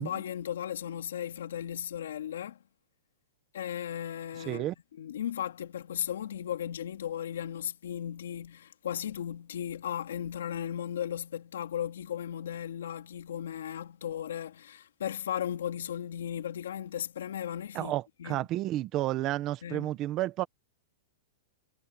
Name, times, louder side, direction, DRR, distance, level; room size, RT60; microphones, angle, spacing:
voice 1, 0.0-2.6 3.5-4.7 5.0-17.9 18.2-18.5 19.6-19.9, left 10 dB, 90° left, 2.3 m, -36 dB
voice 2, 4.4-4.7 17.7-20.4, right 15 dB, 25° right, 1.3 m, -31 dB
supercardioid pair, 170°, 0 cm